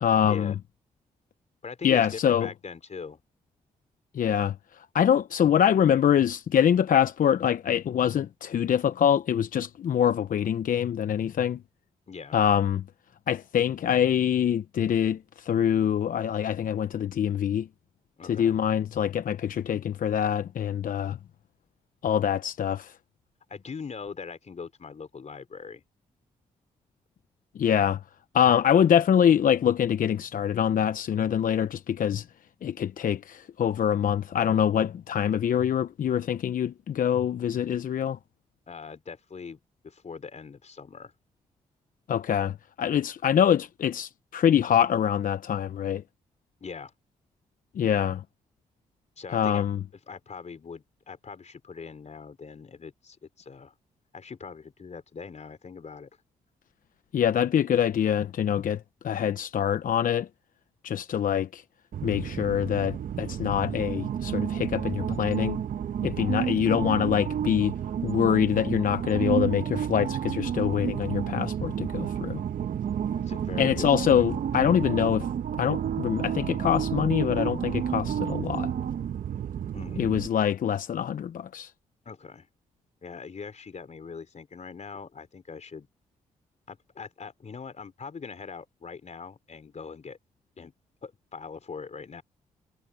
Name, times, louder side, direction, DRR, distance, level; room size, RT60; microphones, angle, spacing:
voice 1, 0.0-0.5 1.8-2.5 4.1-11.6 12.3-12.8 13.3-17.7 18.2-21.2 22.0-23.0 27.5-28.0 28.3-32.3 32.6-38.2 42.1-46.0 47.7-48.2 49.3-49.8 57.1-60.3 60.8-61.6 62.0-65.6 66.0-67.8 68.0-72.4 73.6-75.3 75.6-78.7 80.0-81.7, left 9 dB, 65° left, 0.8 m, -25 dB
voice 2, 1.6-3.2 12.1-12.4 18.2-18.6 23.5-25.8 38.7-41.1 46.6-46.9 49.2-49.7 50.1-53.7 54.1-56.1 73.1-74.3 79.7-80.0 82.1-82.5 83.0-85.9 86.7-90.2 90.6-90.7 91.0-92.2, left 5 dB, 50° left, 3.5 m, -41 dB
sound 1, 61.9-80.3, right 9 dB, 65° right, 1.1 m, -31 dB
supercardioid pair, 50°, 15 cm